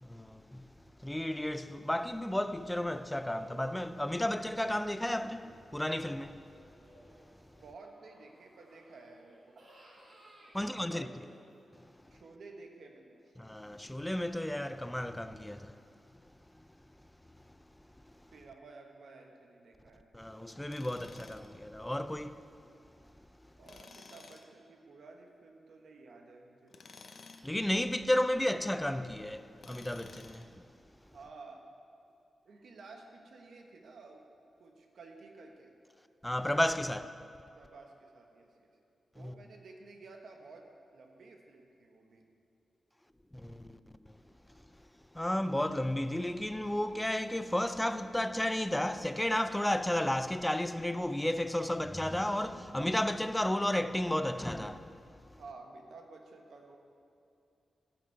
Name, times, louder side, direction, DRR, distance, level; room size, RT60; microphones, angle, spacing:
voice 1, 0.0-0.7 1.0-6.4 10.5-11.1 13.4-15.8 20.1-22.4 27.4-30.5 36.2-37.1 39.2-39.3 43.3-43.8 45.1-55.0, left 1 dB, 10° left, 0.4 m, -33 dB
sound 1, 6.5-11.8, right 1 dB, 55° right, 2.8 m, -60 dB
voice 2, 7.6-9.7 10.6-11.1 12.1-13.2 18.3-20.1 23.6-26.8 31.1-31.7 32.4-34.2 34.6-35.7 37.5-38.7 39.1-40.7 40.9-42.3 55.4-56.8, right 3 dB, 75° right, 1.2 m, -53 dB
Tools, 20.7-21.6 23.6-24.5 26.7-27.6 29.6-30.5, left 4 dB, 55° left, 0.7 m, -53 dB
16.0 x 6.0 x 4.6 m
cardioid pair, 90°, 0 cm